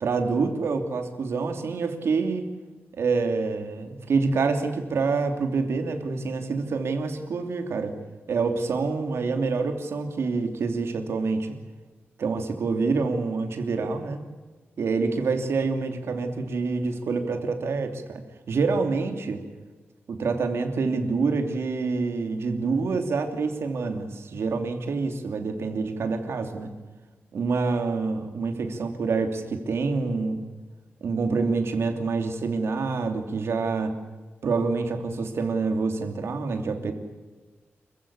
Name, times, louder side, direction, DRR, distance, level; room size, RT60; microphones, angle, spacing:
voice 1, 0.0-2.5 3.0-7.9 8.3-11.5 12.2-14.2 14.8-19.4 20.1-26.7 27.3-30.4 31.0-34.0 34.4-36.9, right 4 dB, 75° right, 6 dB, 2.9 m, -27 dB
27.5 x 15.0 x 8.5 m, 1.3 s
wide cardioid pair, 175°, 4 cm